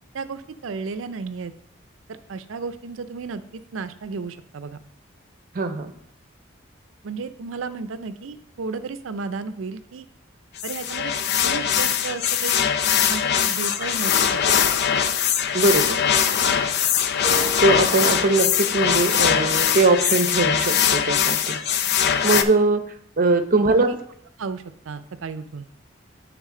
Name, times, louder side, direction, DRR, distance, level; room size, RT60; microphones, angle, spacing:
voice 1, 0.1-1.5 2.1-4.8 7.0-10.1 10.6-11.1 11.4-12.7 13.1-14.3 23.6-24.0 24.4-25.7, right 4 dB, 80° right, 12 dB, 0.5 m, -33 dB
voice 2, 5.5-5.9 15.5-16.0 17.6-21.6 22.2-22.8 23.2-23.9, right 3 dB, 45° right, 8 dB, 0.7 m, -21 dB
sound 1, 10.6-22.4, left 8 dB, 55° left, 0.5 m, -21 dB
Keyboard (musical), 17.2-20.1, right 2 dB, 35° left, 0.8 m, -38 dB
10.5 x 3.6 x 3.7 m, 0.66 s
head